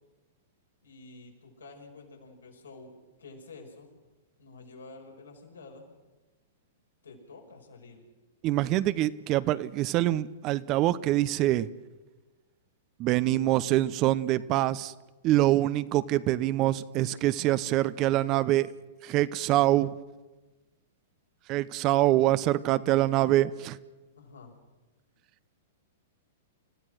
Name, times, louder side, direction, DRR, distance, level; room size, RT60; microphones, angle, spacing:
voice 1, 0.8-2.9 3.2-3.9 4.4-5.8 7.0-8.0 24.2-24.5, left 3 dB, 80° left, 6.2 m, -49 dB
voice 2, 8.4-11.7 13.0-14.9 15.2-18.7 19.0-19.9 21.5-23.8, right 15 dB, 40° right, 0.8 m, -25 dB
29.5 x 15.5 x 6.4 m
hypercardioid pair, 110°, 0 cm